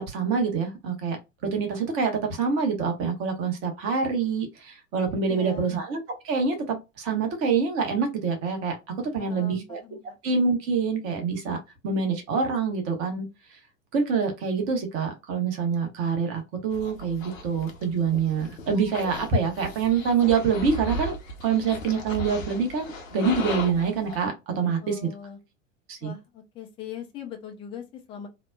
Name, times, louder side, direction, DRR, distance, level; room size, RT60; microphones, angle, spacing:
voice 1, 0.1-1.2 1.4-8.8 9.1-9.8 10.2-11.6 11.8-13.3 13.5-13.6 13.9-21.1 21.4-25.1 25.9-26.1, right 5 dB, 35° right, 0.9 m, -26 dB
voice 2, 5.3-5.8 9.0-10.2 24.8-25.4 26.0-28.3, left 8 dB, 15° left, 0.3 m, -41 dB
sound 1, 16.7-24.2, left 1 dB, 70° left, 0.8 m, -36 dB
3.0 x 2.0 x 2.2 m
figure-of-eight pair, 90°, 40 cm